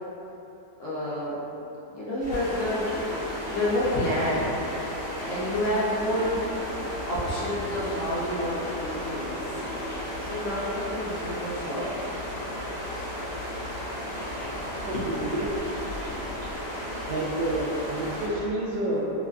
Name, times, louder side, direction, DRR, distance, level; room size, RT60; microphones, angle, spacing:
voice 1, 0.8-1.4 1.9-3.0 3.5-4.6 5.2-6.4 7.1-9.6 10.2-11.9 14.9-15.0, left 1 dB, 60° left, -9 dB, 1.0 m, -29 dB
sound 1, 2.2-18.5, equal, 60° right, 1.1 m, -39 dB
sound 2, 2.3-18.3, equal, 85° left, 1.2 m, -35 dB
voice 2, 14.8-15.5 17.1-19.0, right 1 dB, 85° right, -4 dB, 1.2 m, -29 dB
3.0 x 2.2 x 2.4 m, 3.0 s
omnidirectional pair, 1.7 m